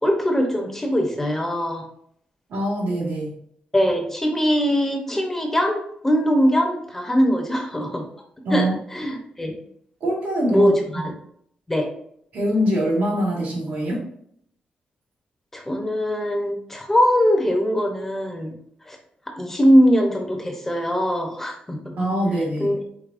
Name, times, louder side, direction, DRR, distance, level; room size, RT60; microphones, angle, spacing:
voice 1, 0.0-1.9 3.7-8.0 8.5-9.5 10.5-11.1 11.7-11.9 15.5-18.5 18.9-19.0 19.3-21.9 22.6-22.8, equal, 10° left, 3 dB, 0.7 m, -21 dB
voice 2, 2.5-3.4 8.4-8.7 10.0-10.7 12.3-14.0 22.0-22.8, equal, 90° right, -3 dB, 1.8 m, -23 dB
4.8 x 4.0 x 2.5 m, 0.67 s
wide cardioid pair, 150°, 3 cm